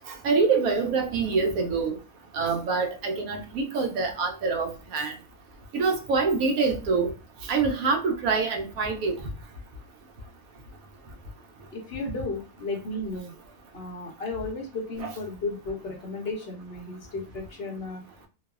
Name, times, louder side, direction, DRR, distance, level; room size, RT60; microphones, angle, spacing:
voice 1, 0.2-2.0 2.3-5.1 5.7-7.1 7.5-9.2 15.0-15.1, right 4 dB, 75° right, 1.0 m, -25 dB
voice 2, 11.7-13.3 13.7-18.0, left 2 dB, 60° left, 0.6 m, -34 dB
3.0 x 2.0 x 2.3 m
omnidirectional pair, 1.6 m